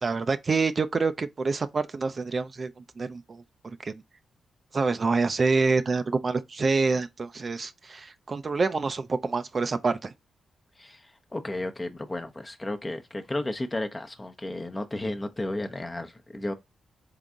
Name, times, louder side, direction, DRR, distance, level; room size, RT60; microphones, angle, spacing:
voice 1, 0.0-4.0 4.7-10.1, right 4 dB, 45° right, 0.5 m, -27 dB
voice 2, 10.8-16.5, left 1 dB, 25° left, 0.8 m, -33 dB
3.9 x 3.5 x 3.7 m
cardioid pair, 55°, 0 cm